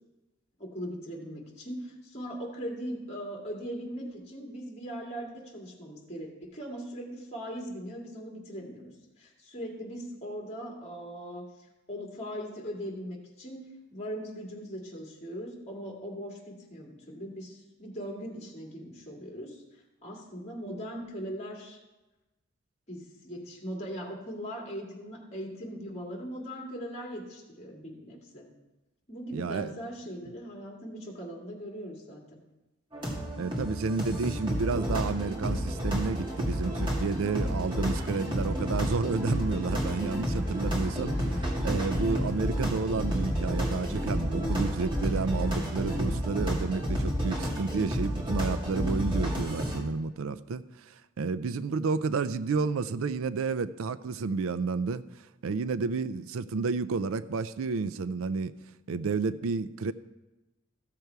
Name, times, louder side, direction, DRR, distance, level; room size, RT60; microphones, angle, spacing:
voice 1, 0.6-8.9 9.2-13.6 13.9-19.6 20.0-21.8 22.9-28.5 29.1-32.4, equal, 35° left, -1 dB, 2.3 m, -40 dB
voice 2, 29.3-29.7 33.4-55.0 55.4-58.5 58.9-59.9, right 4 dB, 90° right, 15 dB, 0.4 m, -31 dB
sound 1, 32.9-49.8, equal, 25° right, 1.9 m, -30 dB
15.0 x 6.8 x 4.6 m, 1.1 s
head